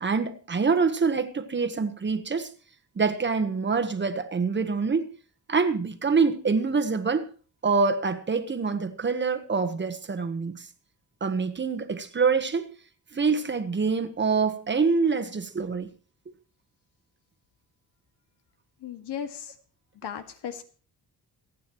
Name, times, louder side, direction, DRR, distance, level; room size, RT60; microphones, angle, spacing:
voice 1, 0.0-2.5 2.9-5.1 5.5-7.3 7.6-10.7 11.2-12.7 13.1-15.9 16.3-16.4, right 5 dB, 30° right, 1.2 m, -25 dB
voice 2, 18.8-19.5 20.0-20.6, left 8 dB, 80° left, 2.1 m, -36 dB
28.0 x 9.3 x 3.1 m
wide cardioid pair, 155°, 40 cm